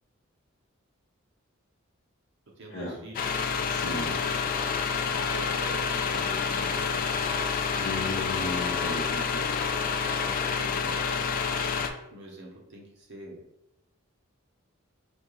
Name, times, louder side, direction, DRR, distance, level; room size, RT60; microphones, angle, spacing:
voice 1, 2.6-3.4 5.2-7.6 10.2-11.2 12.1-13.4, right 1 dB, 60° right, -1 dB, 0.8 m, -45 dB
sound 1, 3.1-11.9, left 5 dB, 45° left, 0.3 m, -28 dB
voice 2, 3.6-4.2 7.8-9.6, left 1 dB, 65° left, -7 dB, 0.8 m, -35 dB
4.1 x 2.4 x 3.1 m, 0.80 s
head